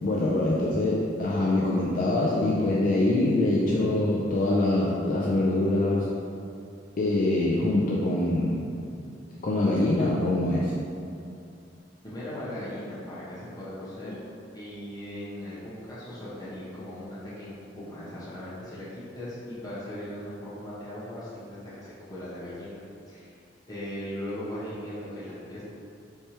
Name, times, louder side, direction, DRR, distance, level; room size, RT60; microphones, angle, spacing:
voice 1, 0.0-6.1 7.0-8.6 9.4-10.7 14.1-14.2, left 2 dB, 45° left, -5 dB, 0.4 m, -24 dB
voice 2, 12.0-14.2 14.5-22.8 23.1-23.3 23.7-25.6, left 1 dB, 20° left, -10 dB, 1.1 m, -38 dB
4.4 x 3.4 x 2.8 m, 2.5 s
head